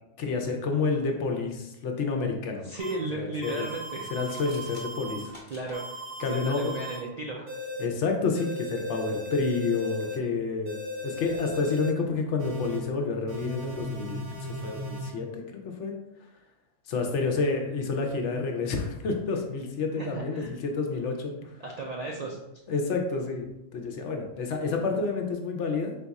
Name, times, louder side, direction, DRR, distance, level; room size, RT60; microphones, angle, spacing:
voice 1, 0.2-2.7 3.1-3.7 4.1-5.3 6.2-6.7 7.8-10.7 11.0-15.9 16.9-21.3 22.7-26.0, left 4 dB, 75° left, 3 dB, 1.0 m, -29 dB
voice 2, 2.6-4.1 5.5-5.8 6.3-7.5 20.0-20.5 21.6-22.4, right 2 dB, 60° right, -2 dB, 0.4 m, -35 dB
sound 1, 2.8-2.9 3.4-5.2 5.7-7.0 7.5-7.8 8.3-10.2 10.7-11.9 12.4-12.8 13.3-15.1, equal, 85° right, 1.7 m, -37 dB
sound 2, 4.2-5.8, left 1 dB, 30° left, 1.0 m, -50 dB
4.1 x 2.4 x 4.0 m, 0.89 s
omnidirectional pair, 1.2 m